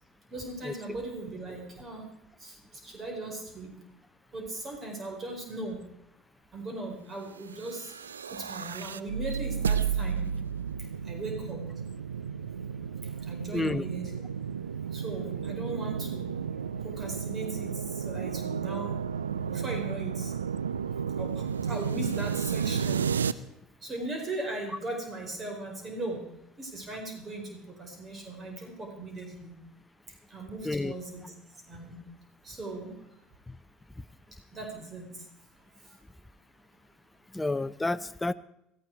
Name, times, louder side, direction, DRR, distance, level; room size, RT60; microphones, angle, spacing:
voice 1, 0.3-2.0 2.4-3.7 4.3-5.8 6.5-7.9 8.3-10.3 11.0-11.6 13.2-14.1 14.9-16.3 16.8-19.0 19.5-20.3 21.2-23.1 23.8-26.2 26.6-29.5 30.1-31.3 31.6-32.0 32.4-32.9 34.5-35.2 35.9-36.0, right 2 dB, 35° right, 3 dB, 4.5 m, -38 dB
sound 1, 7.6-23.3, right 7 dB, 90° right, 0.5 m, -32 dB
voice 2, 13.5-13.8 30.6-30.9 37.3-38.3, left 2 dB, 10° left, 15 dB, 0.7 m, -29 dB
17.5 x 13.5 x 4.6 m, 0.82 s
hypercardioid pair, 70°, 0 cm